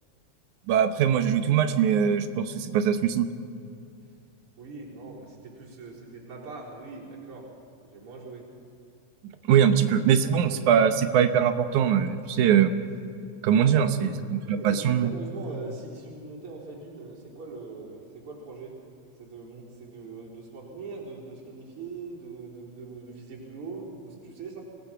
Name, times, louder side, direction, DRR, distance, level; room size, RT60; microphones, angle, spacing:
voice 1, 0.7-3.3 9.5-12.7 13.4-15.1, right 8 dB, 90° right, 9 dB, 2.4 m, -22 dB
voice 2, 4.6-7.5 7.8-8.5 13.5-14.0 14.5-18.8 19.2-24.6, right 4 dB, 45° right, -4 dB, 4.9 m, -41 dB
26.0 x 18.5 x 5.8 m, 2.6 s
omnidirectional pair, 3.3 m